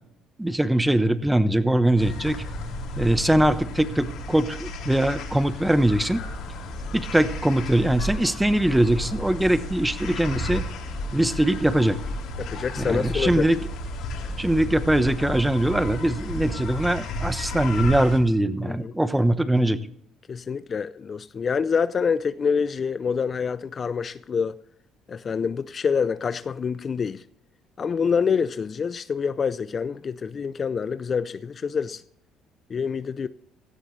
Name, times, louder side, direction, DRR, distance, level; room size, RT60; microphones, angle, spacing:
voice 1, 0.4-2.4 3.0-6.2 6.9-10.6 11.1-12.0 12.8-13.6 14.4-19.8, right 1 dB, 5° right, 1.0 m, -22 dB
sound 1, 2.0-18.2, left 1 dB, 70° left, 3.6 m, -33 dB
voice 2, 12.4-13.5 18.6-18.9 20.3-24.6 25.1-27.2 27.8-32.0 32.7-33.3, left 6 dB, 40° left, 0.5 m, -26 dB
16.5 x 13.0 x 3.2 m
supercardioid pair, 85°, 0 cm